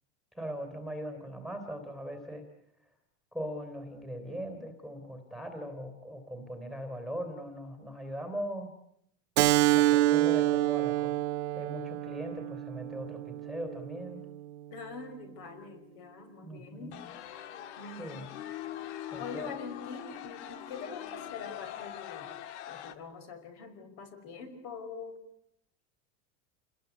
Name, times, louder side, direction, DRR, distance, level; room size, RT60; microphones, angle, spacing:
voice 1, 0.3-2.4 3.3-8.7 9.7-11.2 11.6-14.2 16.4-17.0 18.0-18.3 19.1-19.5, equal, ahead, 6 dB, 3.4 m, -40 dB
Keyboard (musical), 9.4-14.5, right 16 dB, 70° right, 0.9 m, -27 dB
voice 2, 14.7-17.0 17.8-18.3 19.2-22.3 22.7-25.2, left 4 dB, 45° left, 7 dB, 5.4 m, -44 dB
sound 1, 16.9-23.0, left 11 dB, 70° left, 2.0 m, -42 dB
29.0 x 21.0 x 8.2 m, 0.74 s
supercardioid pair, 155°, 35 cm